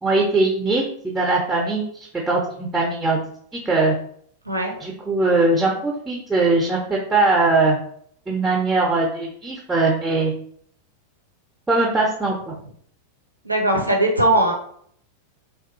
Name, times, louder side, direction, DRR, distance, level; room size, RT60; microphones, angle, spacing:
voice 1, 0.0-3.2 3.5-4.0 4.8-7.8 8.3-10.3 11.7-12.5, right 3 dB, 10° right, -2 dB, 0.5 m, -21 dB
voice 2, 13.5-14.5, right 1 dB, 85° right, 1 dB, 0.5 m, -19 dB
2.8 x 2.3 x 2.5 m, 0.63 s
figure-of-eight pair, 90°, 0 cm